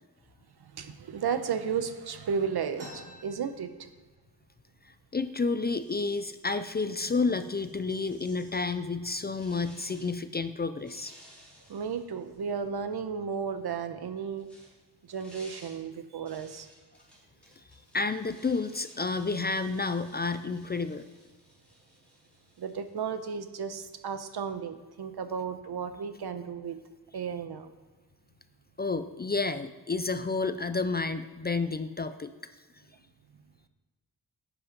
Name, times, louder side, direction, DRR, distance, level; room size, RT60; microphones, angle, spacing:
voice 1, 0.6-3.9 11.7-14.5 15.1-16.7 22.6-26.8 27.1-27.7, right 6 dB, 75° right, 10 dB, 1.0 m, -34 dB
sound 1, 2.7-4.4 4.7-4.8 5.1-5.7 6.3-6.4 7.1-7.3 7.8-8.2, equal, 55° right, 4.1 m, -50 dB
voice 2, 4.8-11.1 17.9-21.0 28.8-32.3, left 4 dB, 25° left, 11 dB, 0.4 m, -30 dB
sound 2, 5.8-8.8 9.4-10.2 10.8-12.9 14.0-24.3, equal, 5° left, 3.9 m, -58 dB
11.0 x 8.1 x 5.2 m, 1.3 s
wide cardioid pair, 175°, 39 cm